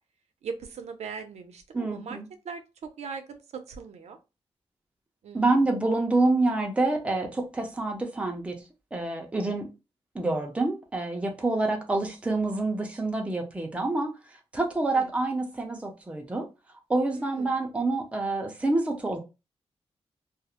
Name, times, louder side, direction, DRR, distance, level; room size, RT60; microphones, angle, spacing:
voice 1, 0.4-2.2 2.4-4.2 5.2-5.7 11.6-11.7 14.9-15.1 17.1-17.6, right 5 dB, 85° right, 0.5 m, -40 dB
voice 2, 1.7-2.3 5.3-8.6 8.9-9.7 10.1-14.1 14.5-16.5 16.9-19.2, right 2 dB, 10° right, 0.4 m, -27 dB
2.3 x 2.0 x 2.8 m
wide cardioid pair, 170°, 11 cm